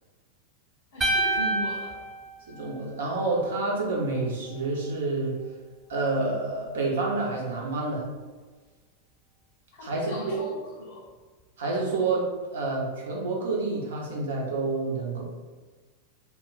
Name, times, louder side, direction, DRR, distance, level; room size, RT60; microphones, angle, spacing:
voice 1, 0.9-2.0 9.7-11.0, left 1 dB, 60° left, -6 dB, 0.5 m, -37 dB
sound 1, 1.0-3.3, right 2 dB, 10° right, 0.3 m, -28 dB
voice 2, 2.5-5.3 5.9-8.0 9.8-10.4 11.6-12.3 12.5-15.2, right 3 dB, 60° right, -2 dB, 0.8 m, -28 dB
2.3 x 2.2 x 3.9 m, 1.3 s
figure-of-eight pair, 90°, 0 cm